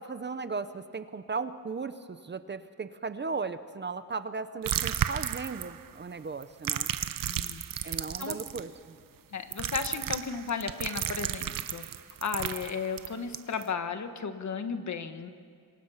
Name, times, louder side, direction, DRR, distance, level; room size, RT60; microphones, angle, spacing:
voice 1, 0.0-6.9 7.8-8.9, right 4 dB, 30° right, 11 dB, 0.7 m, -36 dB
sound 1, 4.6-5.9 6.4-8.6 9.5-13.6, right 10 dB, 65° right, 0.8 m, -33 dB
voice 2, 7.3-8.4 9.3-11.8 12.2-15.3, left 5 dB, 50° left, 8 dB, 1.4 m, -35 dB
27.0 x 23.0 x 5.8 m, 2.1 s
wide cardioid pair, 165°, 37 cm